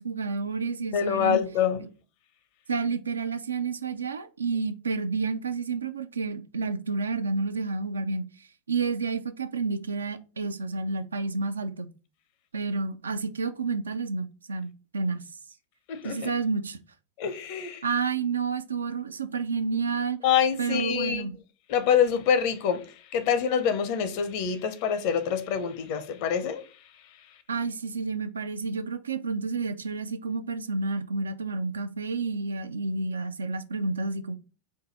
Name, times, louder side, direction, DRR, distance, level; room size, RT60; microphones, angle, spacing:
voice 1, 0.0-1.4 1.8-1.9 2.7-8.2 8.7-11.9 12.5-15.2 16.0-16.8 17.8-20.2 20.6-21.3 27.5-34.3, right 4 dB, 70° right, 0.4 m, -30 dB
voice 2, 0.9-1.8 15.9-16.2 17.2-17.8 20.2-21.2 21.7-22.8 23.1-26.6, left 8 dB, 45° left, 0.7 m, -25 dB
4.6 x 2.6 x 3.8 m
figure-of-eight pair, 90°, 0 cm